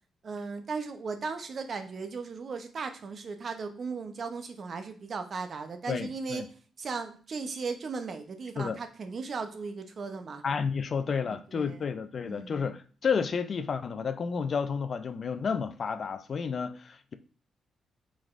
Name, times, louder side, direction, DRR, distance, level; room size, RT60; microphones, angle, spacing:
voice 1, 0.2-6.4 6.8-10.4 11.2-11.8 12.2-12.7, right 4 dB, 55° right, 0.7 m, -37 dB
voice 2, 5.9-6.5 8.6-8.8 10.4-17.1, left 6 dB, 55° left, 0.4 m, -31 dB
4.8 x 4.0 x 2.5 m
supercardioid pair, 50°, 0 cm